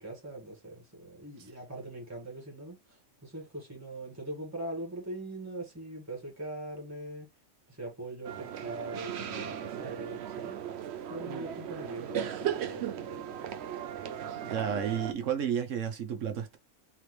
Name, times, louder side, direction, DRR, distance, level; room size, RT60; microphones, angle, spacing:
voice 1, 0.0-7.3 7.7-10.8 11.0-13.6, right 1 dB, 15° right, 1.7 m, -42 dB
sound 1, 8.2-15.1, right 9 dB, 65° right, 0.9 m, -37 dB
voice 2, 14.5-16.6, right 8 dB, 80° right, 1.2 m, -32 dB
3.7 x 3.4 x 3.2 m
omnidirectional pair, 1.3 m